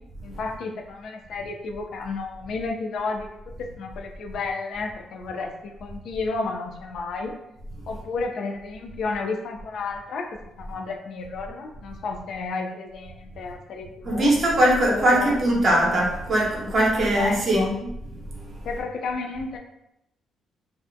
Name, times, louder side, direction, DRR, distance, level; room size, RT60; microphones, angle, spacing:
voice 1, 0.2-7.3 7.9-14.3 14.9-15.3 17.2-17.7 18.6-19.6, left 4 dB, 70° left, 4 dB, 0.3 m, -32 dB
voice 2, 14.0-17.9 18.5-18.7, right 1 dB, 50° right, -3 dB, 0.8 m, -21 dB
2.4 x 2.1 x 2.5 m, 0.85 s
cardioid pair, 90°, 0 cm